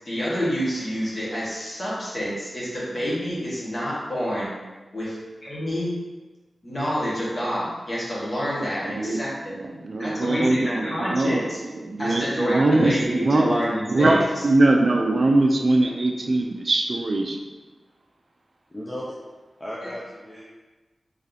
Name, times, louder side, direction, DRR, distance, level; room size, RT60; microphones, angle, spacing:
voice 1, 0.0-4.5 4.9-5.2 5.4-6.0 6.6-9.3 10.0-11.4 12.0-12.6 12.8-14.2 19.8-19.9, equal, 40° left, -8 dB, 1.4 m, -28 dB
voice 2, 8.8-13.6 13.9-17.6, right 2 dB, 45° right, 2 dB, 0.3 m, -22 dB
voice 3, 18.7-19.2 19.6-20.4, left 1 dB, 15° left, -6 dB, 0.5 m, -35 dB
3.1 x 2.8 x 3.9 m, 1.2 s
wide cardioid pair, 120°, 0 cm